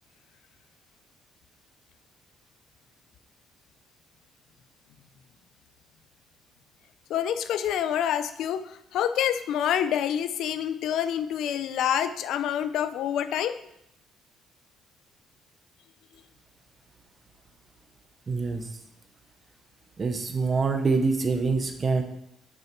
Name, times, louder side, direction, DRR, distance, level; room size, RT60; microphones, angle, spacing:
voice 1, 7.1-13.6, left 9 dB, 70° left, 12 dB, 0.4 m, -27 dB
voice 2, 18.3-18.7 20.0-22.0, right 4 dB, 30° right, 7 dB, 0.8 m, -25 dB
6.3 x 6.0 x 4.4 m, 0.80 s
cardioid pair, 140°, 0 cm